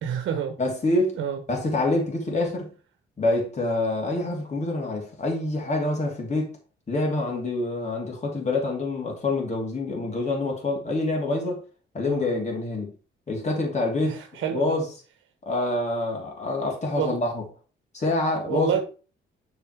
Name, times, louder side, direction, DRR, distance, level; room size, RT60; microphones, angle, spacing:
voice 1, 0.0-0.6 1.2-1.4 12.0-12.3 14.0-14.8 17.0-17.2 18.5-18.8, right 9 dB, 80° right, 1.1 m, -28 dB
voice 2, 0.6-1.2 1.5-2.7 3.2-6.5 6.9-11.6 11.9-12.9 13.3-14.2 14.5-14.9 15.5-17.4 17.9-18.7, left 2 dB, 35° left, 2.7 m, -26 dB
7.1 x 4.3 x 4.5 m
cardioid pair, 90°, 20 cm